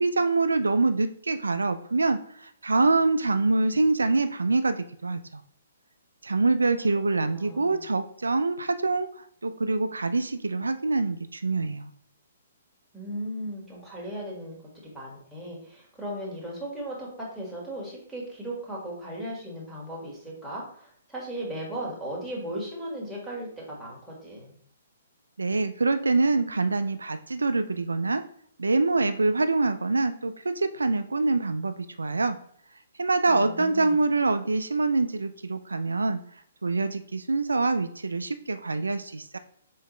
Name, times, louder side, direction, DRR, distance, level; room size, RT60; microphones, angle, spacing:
voice 1, 0.0-5.4 6.2-9.1 9.4-11.9 25.4-28.2 28.6-32.4 33.0-36.2 36.6-39.4, right 3 dB, 90° right, 10 dB, 0.3 m, -25 dB
voice 2, 7.2-7.9 12.9-14.6 14.8-24.5 33.3-34.1, right 1 dB, ahead, -7 dB, 1.7 m, -37 dB
4.1 x 4.0 x 3.1 m, 0.63 s
hypercardioid pair, 135°, 0 cm